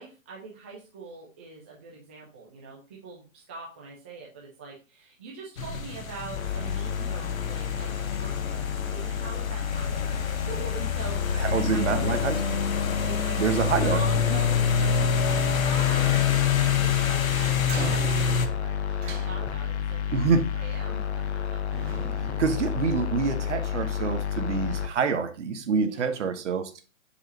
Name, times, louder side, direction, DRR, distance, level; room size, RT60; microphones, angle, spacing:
voice 1, 0.0-12.6 12.8-21.0 21.7-21.9 25.9-26.1, right 3 dB, 10° right, -3 dB, 0.4 m, -43 dB
sound 1, 5.6-18.5, left 7 dB, 80° left, 0.9 m, -27 dB
sound 2, 6.3-24.9, left 8 dB, 50° left, 0.8 m, -30 dB
voice 2, 11.4-12.4 13.4-14.0 14.3-14.4 20.1-20.5 22.4-26.8, right 5 dB, 60° right, 8 dB, 1.2 m, -26 dB
sound 3, 17.6-19.9 21.0-21.4 21.7-23.5, right 4 dB, 35° right, 1.5 m, -40 dB
7.7 x 4.9 x 2.7 m, 0.33 s
figure-of-eight pair, 130°, 41 cm